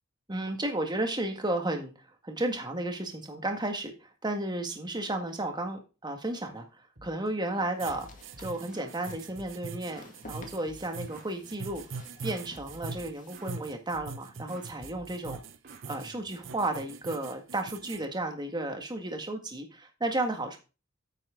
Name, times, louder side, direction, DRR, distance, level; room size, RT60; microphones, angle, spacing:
voice 1, 0.3-6.6 7.0-8.1 8.4-11.8 12.2-15.4 15.9-20.6, right 1 dB, 20° right, 4 dB, 1.7 m, -33 dB
sound 1, 7.0-7.3 7.6-9.0 9.3-11.3 11.7-12.0 12.2-13.6 13.9-14.2 14.5-16.6, right 1 dB, 55° right, 2.6 m, -52 dB
sound 2, 7.4-13.5, left 2 dB, 40° left, 1.9 m, -54 dB
sound 3, 7.8-18.0, right 4 dB, 75° right, 0.8 m, -42 dB
9.5 x 7.7 x 3.8 m, 0.32 s
head